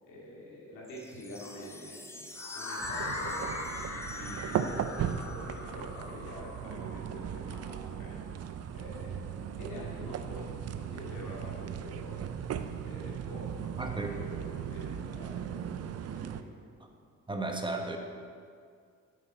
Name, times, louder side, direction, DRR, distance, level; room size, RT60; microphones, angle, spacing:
voice 1, 0.0-8.2 8.7-12.2 12.5-15.7 16.1-16.5, left 1 dB, 90° left, -4 dB, 2.6 m, -46 dB
sound 1, 0.8-5.6, left 2 dB, 10° left, 0.7 m, -48 dB
Ghostly Cry, 2.4-8.3, left 2 dB, 60° left, 1.4 m, -40 dB
sound 2, 2.8-16.4, right 8 dB, 55° right, 0.6 m, -37 dB
voice 2, 13.8-14.1 17.3-18.0, right 2 dB, 15° right, 3 dB, 1.1 m, -34 dB
8.8 x 7.7 x 5.1 m, 2.2 s
cardioid pair, 90°, 30 cm